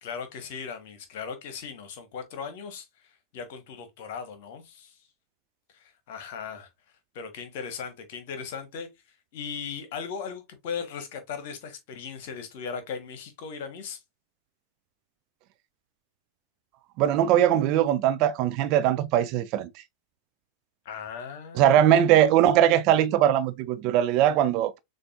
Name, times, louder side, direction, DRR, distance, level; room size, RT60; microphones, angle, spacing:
voice 1, 0.0-2.9 3.3-4.9 5.7-6.7 7.1-8.9 9.3-14.0 20.8-21.9, left 6 dB, 50° left, 1.2 m, -37 dB
voice 2, 17.0-19.7 21.5-24.8, right 11 dB, 40° right, 0.4 m, -21 dB
6.5 x 2.7 x 2.5 m
figure-of-eight pair, 90°, 0 cm